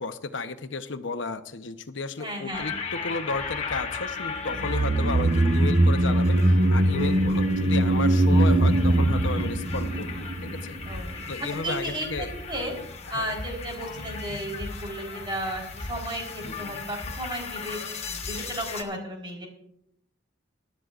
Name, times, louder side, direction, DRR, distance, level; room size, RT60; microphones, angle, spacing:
voice 1, 0.0-10.8 11.3-12.3 13.1-13.4 16.4-16.7, left 3 dB, 80° left, 9 dB, 0.9 m, -33 dB
voice 2, 2.2-2.7 10.8-11.1 11.4-12.7 13.1-19.5, right 1 dB, 25° right, 0 dB, 3.9 m, -34 dB
sound 1, 2.5-18.8, left 4 dB, 35° left, 1.3 m, -36 dB
sound 2, 4.5-10.9 11.2-11.3, right 1 dB, 50° right, 0.8 m, -22 dB
23.5 x 12.0 x 2.5 m, 0.75 s
head